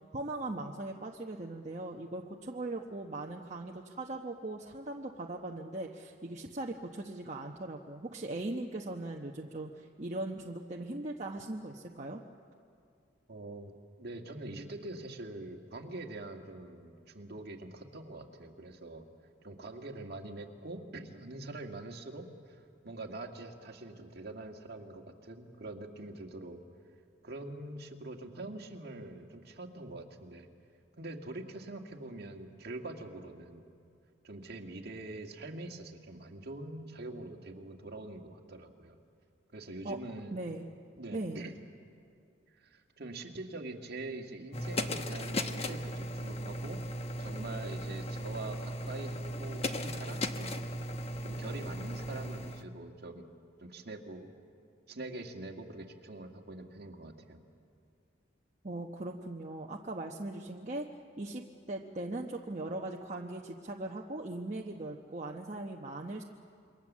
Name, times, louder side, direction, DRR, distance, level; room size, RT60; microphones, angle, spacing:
voice 1, 0.1-12.2 39.8-40.0 40.3-40.7 41.1-41.4 58.6-60.9 61.2-66.2, right 2 dB, 40° right, 0 dB, 1.0 m, -39 dB
voice 2, 13.3-19.1 19.4-22.6 22.8-26.6 27.2-30.5 31.0-33.6 34.2-39.0 39.5-40.4 41.0-41.6 42.6-46.8 47.2-50.5 51.2-53.3 53.6-54.3 54.9-57.4, right 2 dB, 55° right, 2 dB, 2.0 m, -44 dB
sound 1, 44.5-52.6, equal, 35° left, 1.1 m, -37 dB
27.5 x 23.0 x 7.4 m, 2.4 s
head